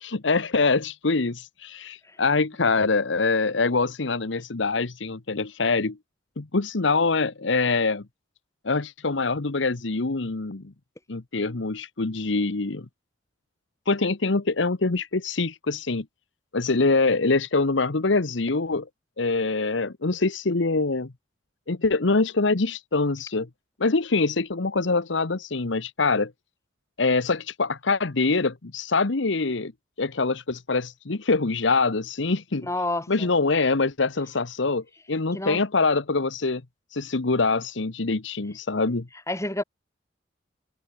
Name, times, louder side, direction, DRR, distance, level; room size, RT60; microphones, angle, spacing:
voice 1, 0.0-6.0 6.4-8.0 8.6-10.6 11.1-12.9 13.9-16.0 16.5-18.9 19.2-21.1 21.7-23.5 23.8-26.3 27.0-29.7 30.0-32.7 33.1-36.6 36.9-39.1, left 3 dB, 70° left, 1.1 m, -24 dB
voice 2, 32.6-33.3 35.3-35.6 39.3-39.6, left 2 dB, 15° left, 7.0 m, -29 dB
head